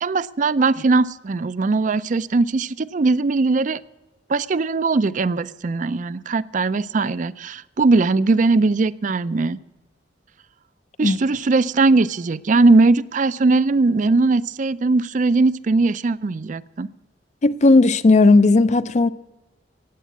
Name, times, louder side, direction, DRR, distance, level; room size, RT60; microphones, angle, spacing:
voice 1, 0.0-3.8 4.3-9.6 11.0-16.9, right 3 dB, 45° right, 0.4 m, -19 dB
voice 2, 17.4-19.1, left 3 dB, 40° left, 0.4 m, -15 dB
15.5 x 9.4 x 8.2 m
head